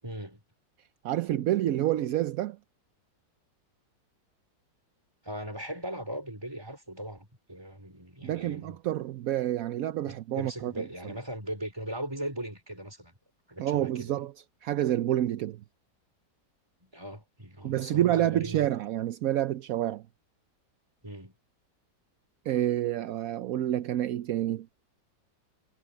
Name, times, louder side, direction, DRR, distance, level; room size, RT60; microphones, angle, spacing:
voice 1, 0.0-0.4 5.2-8.8 10.1-13.2 13.5-14.2 16.8-18.7 21.0-21.3, right 1 dB, 15° right, 5.1 m, -39 dB
voice 2, 1.0-2.6 8.2-10.9 13.6-14.3 14.6-15.6 17.6-20.0 22.5-24.7, right 13 dB, 70° right, 0.9 m, -28 dB
omnidirectional pair, 1.9 m